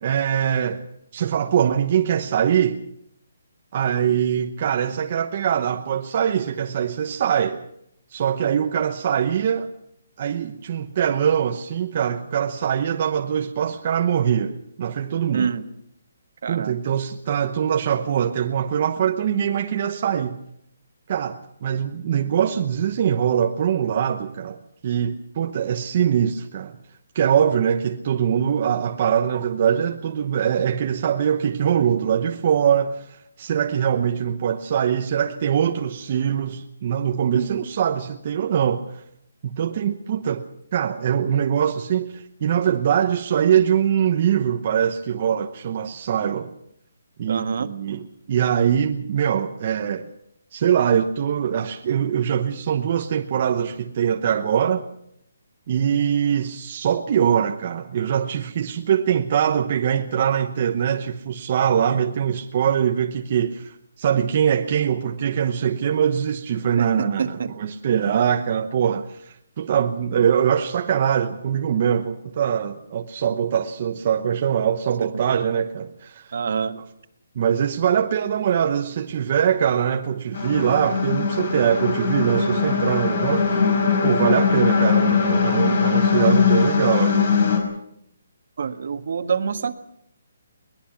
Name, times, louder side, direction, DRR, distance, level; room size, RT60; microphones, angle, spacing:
voice 1, 0.0-0.8 1.1-2.8 3.7-7.6 8.1-9.7 10.2-15.5 16.5-20.4 21.1-26.7 27.1-39.0 39.4-40.5 40.7-46.5 47.2-50.1 50.5-54.8 55.7-76.3 77.4-83.8 84.0-87.5, right 8 dB, 35° right, 1.0 m, -22 dB
voice 2, 15.3-15.6 16.4-16.7 37.3-37.6 47.3-47.7 66.8-67.5 76.3-76.8 88.6-89.8, right 6 dB, 55° right, 1.6 m, -26 dB
sound 1, 80.3-87.6, left 6 dB, 55° left, 5.1 m, -20 dB
22.0 x 20.5 x 5.9 m
hypercardioid pair, 170°, 0 cm